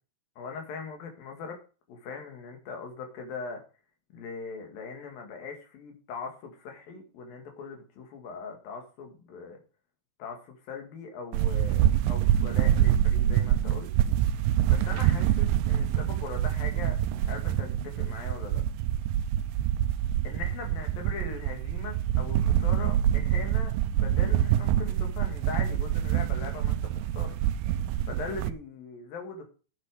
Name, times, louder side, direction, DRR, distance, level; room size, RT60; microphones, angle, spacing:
voice 1, 0.4-1.6 1.9-3.6 4.1-9.6 10.2-13.9 14.7-18.6 20.2-27.4 28.1-29.5, left 5 dB, 80° left, 4 dB, 3.9 m, -40 dB
sound 1, 11.3-28.5, right 11 dB, 85° right, 2.3 m, -26 dB
8.8 x 8.4 x 5.0 m, 0.35 s
omnidirectional pair, 4.1 m